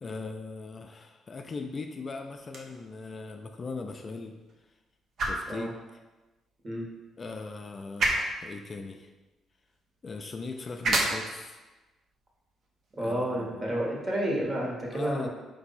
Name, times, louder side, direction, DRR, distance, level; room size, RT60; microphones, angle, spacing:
voice 1, 0.0-4.4 5.2-5.8 7.2-9.1 10.0-11.6 13.0-13.7 14.9-15.3, left 3 dB, 40° left, 4 dB, 0.3 m, -39 dB
sound 1, 2.4-14.4, right 2 dB, 60° right, 0.8 m, -36 dB
voice 2, 13.0-15.3, right 1 dB, 30° right, -3 dB, 1.4 m, -30 dB
4.6 x 2.6 x 4.0 m, 1.2 s
cardioid pair, 90°, 0 cm